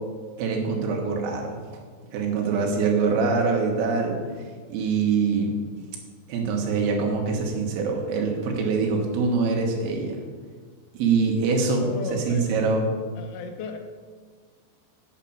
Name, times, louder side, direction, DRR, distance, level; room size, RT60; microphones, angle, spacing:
voice 1, 0.4-1.6 2.1-4.2 4.7-5.6 6.3-10.2 10.9-12.8, right 4 dB, 90° right, 1 dB, 4.2 m, -24 dB
voice 2, 11.8-12.5 13.2-13.8, left 4 dB, 80° left, 5 dB, 3.5 m, -35 dB
8.3 x 8.2 x 7.3 m, 1.6 s
omnidirectional pair, 5.7 m